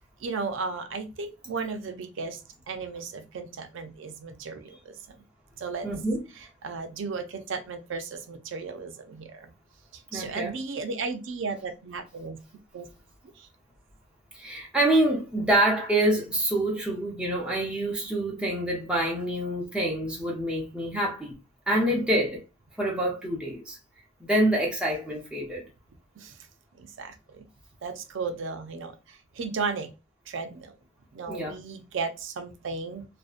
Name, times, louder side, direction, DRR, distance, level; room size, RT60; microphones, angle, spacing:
voice 1, 0.2-5.0 5.6-5.9 6.4-9.5 9.9-12.4 12.7-12.9 13.4-13.5 21.7-22.2 26.2-26.4 26.8-27.4 27.8-29.9 30.3-30.7 31.1-33.1, right 4 dB, 75° right, 0.4 m, -35 dB
voice 2, 5.8-6.2 10.1-10.5 14.3-21.3 21.7-22.4 22.8-23.8 24.3-25.6 31.3-31.5, right 1 dB, 5° right, 0.6 m, -26 dB
2.6 x 2.1 x 2.4 m
head